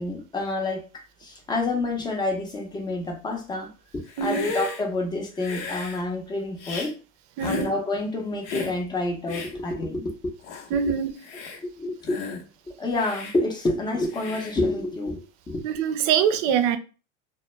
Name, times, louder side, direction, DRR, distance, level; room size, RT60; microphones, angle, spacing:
voice 1, 0.0-6.9 7.4-10.3 11.6-12.2 12.7-15.6, left 2 dB, 10° left, 0.6 m, -28 dB
Hiss, 4.1-4.8 5.4-6.0 6.6-6.9 7.4-7.7 8.4-8.8 9.3-9.5 10.1-10.2 10.4-10.7 11.2-11.6 12.0-12.4 12.9-13.4 14.1-14.6, left 4 dB, 65° left, 0.8 m, -34 dB
voice 2, 7.4-7.7 10.7-11.1 15.6-16.8, right 8 dB, 50° right, 0.5 m, -23 dB
2.2 x 2.1 x 3.0 m
supercardioid pair, 125°, 38 cm